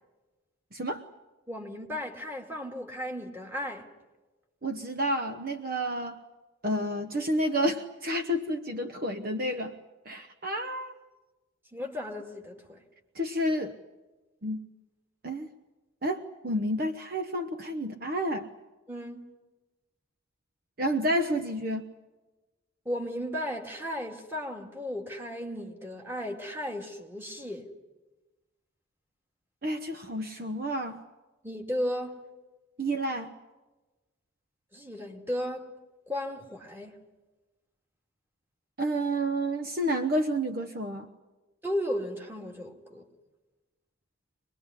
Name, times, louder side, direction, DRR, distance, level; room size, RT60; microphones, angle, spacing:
voice 1, 0.7-1.0 4.6-6.2 6.6-9.8 10.0-10.9 13.1-13.8 14.4-14.6 15.2-15.5 16.0-18.5 20.8-21.8 29.6-31.0 32.8-33.3 38.8-41.1, equal, 45° right, 1.0 m, -30 dB
voice 2, 1.5-3.9 11.7-12.8 18.9-19.3 22.9-27.7 31.4-32.2 34.7-35.7 36.1-36.9 41.6-43.0, equal, 10° right, 2.3 m, -35 dB
25.0 x 20.5 x 9.8 m
head